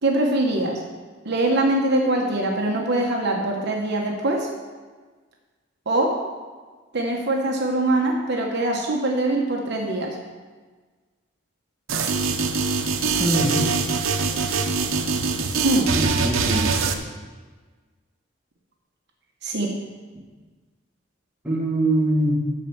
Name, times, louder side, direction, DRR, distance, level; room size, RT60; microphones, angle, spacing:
voice 1, 0.0-0.8 1.2-4.5 5.9-6.1 6.9-10.2 15.6-15.9 19.4-19.7, right 2 dB, 55° right, 0 dB, 1.2 m, -23 dB
sound 1, 11.9-16.9, right 4 dB, 85° right, 0.9 m, -23 dB
voice 2, 13.2-13.6 15.9-16.8 21.4-22.4, right 1 dB, 5° right, -5 dB, 2.3 m, -23 dB
13.0 x 4.4 x 7.3 m, 1.4 s
head